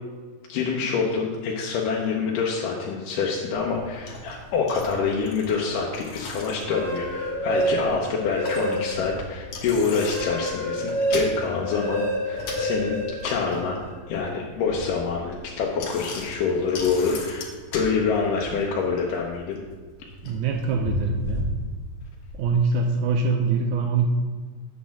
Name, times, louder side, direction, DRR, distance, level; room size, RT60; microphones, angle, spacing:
voice 1, 0.5-13.8 14.1-19.6, left 5 dB, 75° left, -2 dB, 2.3 m, -26 dB
Bicycle, 3.5-22.4, left 1 dB, 60° left, 2.0 m, -37 dB
sound 1, 6.5-9.1 9.6-13.9, right 1 dB, 40° right, 0.5 m, -28 dB
voice 2, 20.2-21.5 22.4-24.1, right 4 dB, 85° right, 3 dB, 1.7 m, -24 dB
8.5 x 4.2 x 7.1 m, 1.4 s
omnidirectional pair, 4.0 m